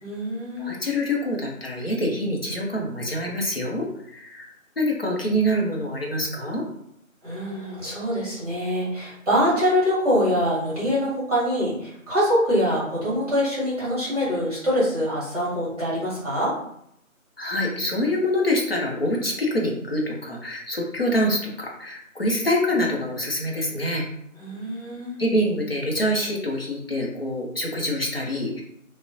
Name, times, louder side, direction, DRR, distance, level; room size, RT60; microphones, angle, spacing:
voice 1, 0.0-0.8 7.2-16.5 24.4-25.2, equal, 25° right, -8 dB, 1.1 m, -24 dB
voice 2, 0.6-6.6 17.4-24.1 25.2-28.6, equal, 45° left, -1 dB, 0.5 m, -25 dB
2.4 x 2.0 x 2.5 m, 0.73 s
figure-of-eight pair, 175°, 42 cm